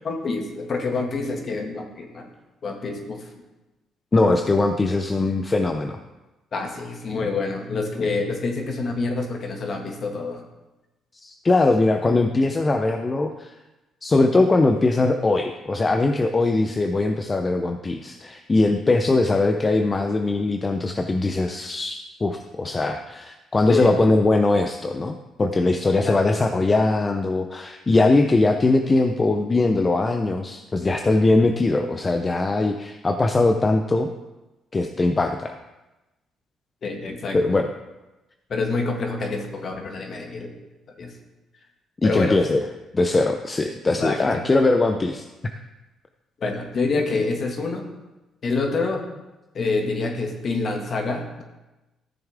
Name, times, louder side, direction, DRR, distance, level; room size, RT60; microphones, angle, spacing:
voice 1, 0.0-2.3 2.6-3.3 6.5-10.4 23.7-23.9 26.0-26.2 36.8-37.6 38.5-40.5 41.0-41.1 42.0-42.4 43.9-44.4 46.4-47.9 48.4-49.1 49.5-51.4, left 3 dB, 50° left, 2 dB, 2.1 m, -27 dB
voice 2, 4.1-6.0 11.2-13.5 14.0-34.1 34.7-35.5 37.3-37.7 42.0-42.6 42.9-45.3, left 2 dB, 30° left, 6 dB, 0.7 m, -21 dB
14.0 x 7.0 x 3.6 m, 1.1 s
supercardioid pair, 70°, 0 cm